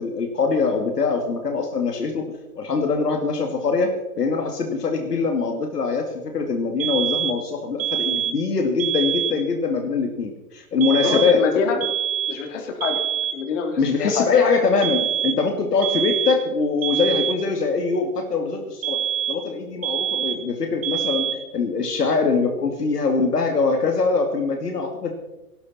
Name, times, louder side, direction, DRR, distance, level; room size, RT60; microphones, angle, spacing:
voice 1, 0.0-2.3 2.6-3.9 4.2-11.4 13.8-25.1, left 4 dB, 80° left, 4 dB, 2.4 m, -23 dB
sound 1, 6.8-7.5 7.8-8.5 8.8-9.5 10.8-11.5 11.8-12.5 12.8-13.5 14.8-15.5 15.8-16.5 16.8-17.5 18.8-19.5 19.8-20.5 20.8-21.5, right 10 dB, 55° right, 1.8 m, -25 dB
voice 2, 10.9-11.8 12.3-13.0 13.3-14.3, left 5 dB, 50° left, 4 dB, 3.2 m, -25 dB
18.0 x 11.5 x 4.3 m, 1.0 s
hypercardioid pair, 125°, 47 cm